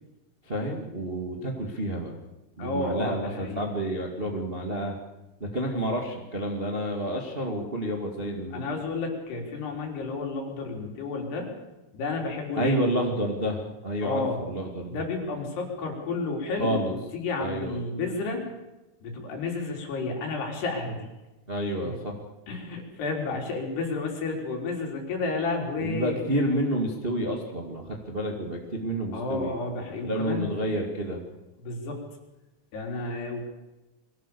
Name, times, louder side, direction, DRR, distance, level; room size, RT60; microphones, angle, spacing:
voice 1, 0.4-2.1 2.6-4.9 5.4-8.7 12.5-15.0 16.6-16.9 17.4-17.8 21.5-22.2 25.8-29.5 30.0-31.2, right 1 dB, 45° right, 1 dB, 0.7 m, -29 dB
voice 2, 2.6-3.7 8.5-11.5 11.9-12.8 14.0-14.4 14.9-18.4 19.0-21.1 21.8-21.9 22.5-26.2 29.1-30.5 31.6-32.0 32.7-33.5, left 3 dB, 60° left, 1 dB, 5.7 m, -31 dB
23.5 x 17.5 x 7.0 m, 1.0 s
omnidirectional pair, 5.4 m